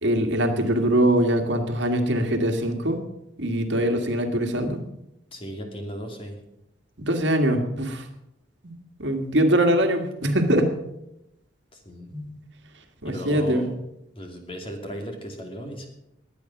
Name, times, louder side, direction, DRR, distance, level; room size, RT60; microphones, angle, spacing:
voice 1, 0.0-3.0 3.4-4.8 7.0-8.0 8.6-8.7 9.0-10.7 12.1-12.4 13.0-13.7, right 1 dB, 70° right, 4 dB, 2.0 m, -22 dB
voice 2, 5.3-6.4 11.7-12.1 13.0-13.7 14.1-15.9, equal, 30° left, 3 dB, 2.6 m, -36 dB
21.0 x 8.8 x 6.0 m, 0.86 s
head